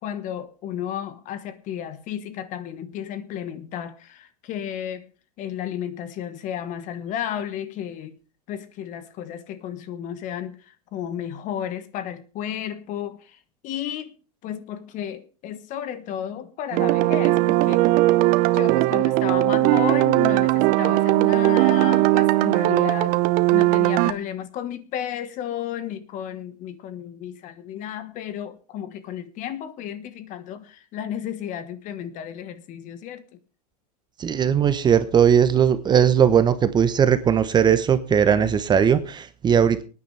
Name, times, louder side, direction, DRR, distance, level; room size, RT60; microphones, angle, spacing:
voice 1, 0.0-5.1 5.4-8.2 8.5-13.4 13.6-14.1 14.4-17.8 18.5-23.2 23.5-33.2, left 10 dB, 40° left, 1.3 m, -33 dB
sound 1, 16.7-24.1, right 18 dB, 45° right, 0.8 m, -19 dB
voice 2, 34.2-39.8, right 8 dB, 20° right, 1.0 m, -18 dB
24.5 x 9.6 x 3.4 m
supercardioid pair, 125°, 20 cm